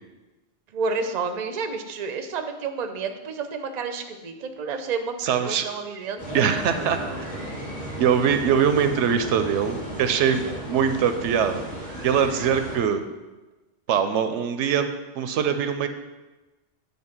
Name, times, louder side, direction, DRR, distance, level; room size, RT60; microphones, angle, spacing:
voice 1, 0.7-6.2 10.4-10.6, right 4 dB, 45° right, 7 dB, 0.6 m, -30 dB
voice 2, 5.2-5.6 6.3-7.0 8.0-11.6 12.0-13.0 13.9-14.9 15.2-15.9, right 7 dB, 85° right, 9 dB, 0.9 m, -22 dB
sound 1, 6.2-12.8, equal, 30° left, 2.1 m, -35 dB
8.8 x 3.4 x 5.8 m, 1.1 s
omnidirectional pair, 1.2 m